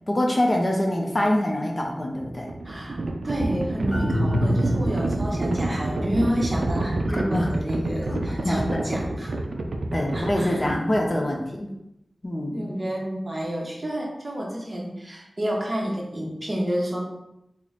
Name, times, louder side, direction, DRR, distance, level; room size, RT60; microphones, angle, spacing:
voice 1, 0.1-2.5 7.1-7.5 8.0-8.9 9.9-11.7 12.2-12.7, left 1 dB, 35° left, 0 dB, 0.4 m, -25 dB
Livestock farm animals working animals, 2.1-11.2, right 2 dB, 70° right, 0.3 m, -28 dB
voice 2, 2.6-3.0 3.2-9.3 10.1-10.6 12.5-17.0, equal, 30° right, -2 dB, 0.7 m, -29 dB
sound 1, 3.9-5.4, equal, 55° left, 0.9 m, -25 dB
3.0 x 2.0 x 3.9 m, 0.85 s
wide cardioid pair, 80°, 0 cm